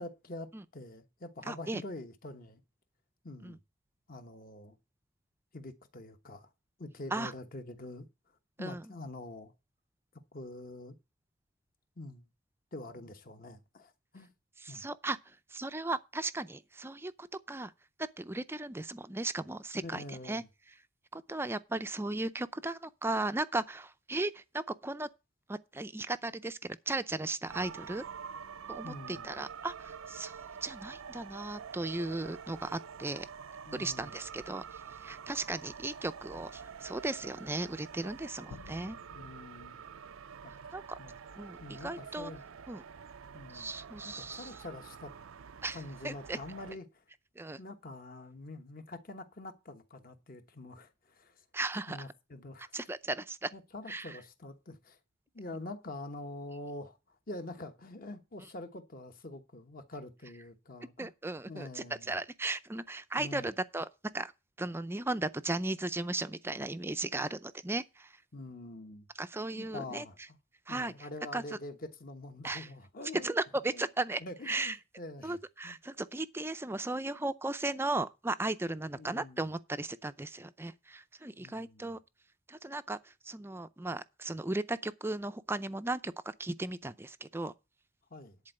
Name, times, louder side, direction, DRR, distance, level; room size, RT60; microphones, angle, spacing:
voice 1, 0.0-2.6 3.2-3.6 4.1-4.8 5.5-6.5 6.8-8.1 8.6-9.5 10.3-10.9 12.0-12.3 12.7-14.3 14.7-14.8 19.7-20.5 28.8-29.3 33.7-34.2 39.1-39.8 40.4-40.5 41.0-41.1 41.6-42.4 43.3-43.7 44.0-45.1 45.7-47.0 47.6-51.3 51.9-52.8 53.5-55.0 55.3-57.0 57.3-61.1 61.5-62.1 63.2-63.5 68.3-69.1 69.6-70.4 70.7-73.3 73.7-73.9 74.2-75.4 75.6-75.8 78.9-79.4 81.4-81.9 88.1-88.4, left 2 dB, 45° left, 1.2 m, -45 dB
voice 2, 1.4-1.8 3.4-3.6 7.1-7.3 8.6-8.9 14.6-17.7 18.0-20.4 21.1-25.1 25.5-28.0 28.7-33.3 33.7-39.0 40.7-41.0 41.4-42.3 42.7-42.8 43.5-44.6 45.6-46.4 47.4-47.6 51.5-52.1 52.6-53.5 53.9-54.2 61.0-63.9 64.1-64.3 64.6-68.2 69.1-70.0 70.7-71.6 72.4-72.7 73.2-74.8 75.2-82.0 82.5-87.5, right 2 dB, 10° right, 0.5 m, -36 dB
sound 1, 27.5-46.8, right 7 dB, 85° right, 0.5 m, -47 dB
sound 2, 38.5-41.0, left 5 dB, 85° left, 0.4 m, -54 dB
10.5 x 4.5 x 7.8 m
head